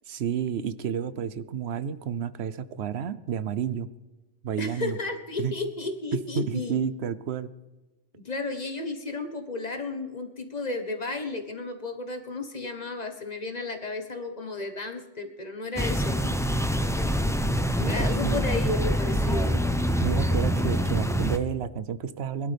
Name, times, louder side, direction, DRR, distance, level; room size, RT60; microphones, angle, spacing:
voice 1, 0.1-3.9 4.4-5.0 5.4-5.5 6.1-7.5 17.8-18.4 19.9-22.5, right 8 dB, 65° right, 15 dB, 0.9 m, -30 dB
voice 2, 4.6-6.8 8.1-16.3 17.8-19.6, left 3 dB, 35° left, 6 dB, 1.3 m, -33 dB
sound 1, 15.8-21.4, equal, 5° left, 0.5 m, -25 dB
22.0 x 12.0 x 3.4 m, 1.1 s
omnidirectional pair, 1.2 m